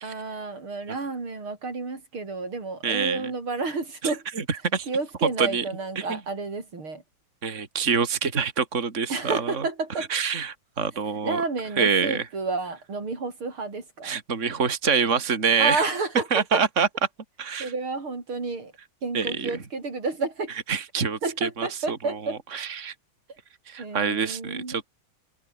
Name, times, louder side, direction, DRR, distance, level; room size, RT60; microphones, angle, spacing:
voice 1, 0.0-4.2 4.9-7.0 9.1-10.1 11.2-14.2 15.6-16.4 17.6-18.7 19.0-20.5 21.2-22.4 23.8-24.8, right 3 dB, 85° right, 5.8 m, -30 dB
voice 2, 2.8-3.3 4.0-4.4 4.7-4.9 5.4-5.6 6.0-6.2 7.4-9.7 10.0-11.4 11.8-12.3 14.0-15.9 16.3-16.9 17.4-17.7 19.1-19.6 20.7-22.9 23.7-25.0, right 6 dB, 35° right, 3.0 m, -26 dB
omnidirectional pair, 2.3 m